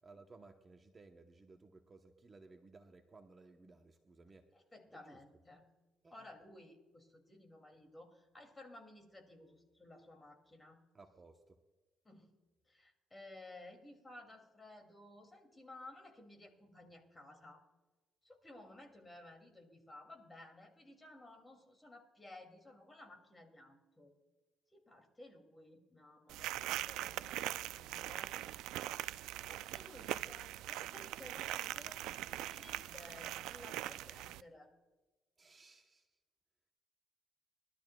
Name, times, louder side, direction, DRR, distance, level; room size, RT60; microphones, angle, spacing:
voice 1, 0.0-4.5 4.9-5.2 6.0-6.3 10.9-11.6 35.4-36.2, right 3 dB, 30° right, 4 dB, 1.0 m, -59 dB
voice 2, 4.5-5.7 6.1-10.8 12.0-12.3 12.7-17.6 18.2-24.1 24.7-28.4 28.6-28.9 29.3-34.7, left 2 dB, 15° left, 4 dB, 2.6 m, -56 dB
sound 1, 26.3-34.4, right 14 dB, 90° right, 0.3 m, -42 dB
21.5 x 12.5 x 2.3 m, 1.2 s
cardioid pair, 105°, 0 cm